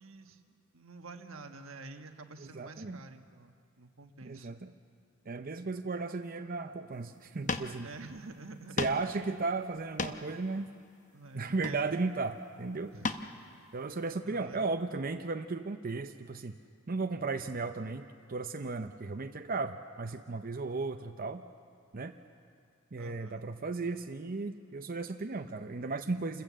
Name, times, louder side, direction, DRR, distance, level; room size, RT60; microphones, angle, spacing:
voice 1, 0.0-4.5 7.8-8.9 11.1-11.9 12.9-13.1 14.2-14.7 23.0-23.4, right 3 dB, 85° right, 6 dB, 1.4 m, -49 dB
voice 2, 2.4-3.0 4.2-4.7 5.3-7.9 8.8-10.7 11.3-12.9 13.7-16.6 16.9-21.4 21.9-22.1 22.9-26.4, right 3 dB, 45° right, 6 dB, 0.7 m, -35 dB
sound 1, 7.2-7.3 7.5-7.8 8.1-8.2 8.8-9.1 9.7-10.4 11.5-12.1 13.0-13.3 13.8-13.9, left 4 dB, 40° left, 0.9 m, -35 dB
28.0 x 15.5 x 7.5 m, 2.3 s
head